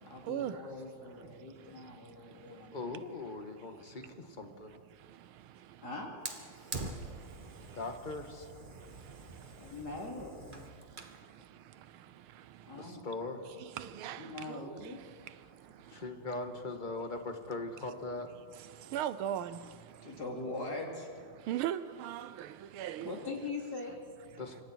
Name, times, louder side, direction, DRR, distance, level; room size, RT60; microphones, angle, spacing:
voice 1, 0.0-2.8 5.8-6.2 9.6-10.7 12.6-13.0 14.2-15.0 20.0-21.1 23.1-24.0, left 3 dB, 45° left, 4.0 m, -42 dB
voice 2, 2.7-4.8 7.7-8.5 12.7-13.4 15.9-18.3 24.4-24.6, left 3 dB, 25° left, 1.7 m, -40 dB
Fire, 6.2-11.2, right 3 dB, 25° right, 1.6 m, -45 dB
voice 3, 13.8-14.7 18.9-19.6 21.5-23.1, right 11 dB, 80° right, 1.6 m, -37 dB
27.0 x 25.0 x 4.5 m
omnidirectional pair, 2.3 m